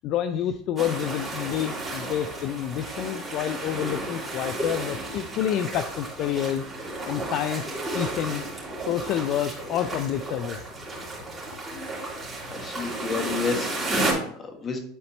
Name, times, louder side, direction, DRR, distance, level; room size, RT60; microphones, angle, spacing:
voice 1, 0.0-6.6 7.0-8.5 8.8-10.6, left 10 dB, 50° left, 9 dB, 0.4 m, -28 dB
sound 1, 0.8-14.1, right 2 dB, 10° right, 3.0 m, -33 dB
voice 2, 12.5-14.8, left 5 dB, 25° left, 4 dB, 1.4 m, -31 dB
10.0 x 4.2 x 3.2 m, 0.63 s
supercardioid pair, 120°, 0 cm